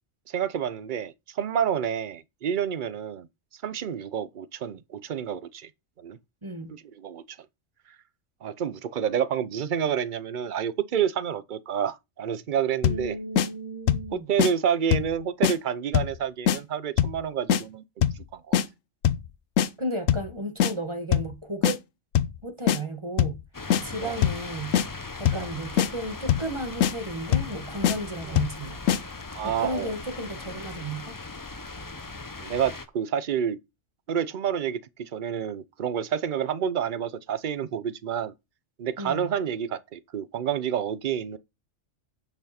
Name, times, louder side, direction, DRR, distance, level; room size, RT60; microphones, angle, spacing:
voice 1, 0.3-3.3 3.6-5.7 6.0-6.2 7.0-7.4 8.4-13.1 14.1-17.8 18.3-18.6 24.0-24.2 25.3-25.5 28.3-28.4 29.3-29.9 32.4-33.6 34.1-38.3 38.8-41.4, right 8 dB, 50° right, 0.7 m, -29 dB
voice 2, 6.4-6.8 12.8-14.3 19.8-21.8 22.4-23.4 23.8-24.8 25.2-28.8 29.4-31.2 39.0-39.3, right 1 dB, 25° right, 1.5 m, -34 dB
sound 1, 12.8-13.1 13.4-13.5 13.9-14.1 14.4-14.5 14.9-15.1 15.4-15.6 15.9-16.2 16.5-16.6 17.0-17.2 17.5-17.6 18.0-18.2 18.5-18.7 19.0-19.3 19.6-19.7 20.1-20.3 20.6-20.7 21.1-21.3 21.6-21.8 22.1-22.4 22.7-22.8 23.2-23.4 23.7-23.8 24.2-24.4 24.7-24.9 25.3-25.5 25.8-25.9 26.3-26.5 26.8-26.9 27.3-27.5 27.8-28.0 28.4-28.6 28.9-29.0, left 9 dB, 85° left, 1.1 m, -22 dB
sound 2, 23.5-32.9, left 3 dB, 20° left, 0.5 m, -39 dB
8.9 x 6.1 x 4.3 m
omnidirectional pair, 1.3 m